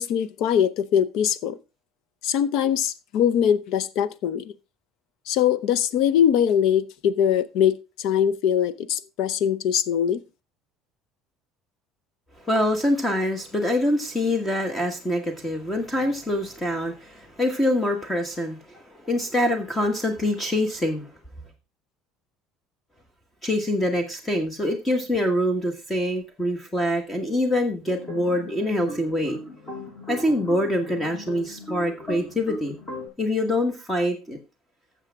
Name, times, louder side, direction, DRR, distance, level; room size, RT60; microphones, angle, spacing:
voice 1, 0.0-1.6 2.2-4.5 5.3-10.2, left 9 dB, 65° left, 0.7 m, -22 dB
voice 2, 12.4-21.1 23.4-29.4 30.1-32.8 33.2-34.4, left 1 dB, 10° left, 1.4 m, -25 dB
sound 1, 27.8-33.1, left 1 dB, 25° left, 7.3 m, -37 dB
13.0 x 7.2 x 3.6 m
cardioid pair, 135°, 0 cm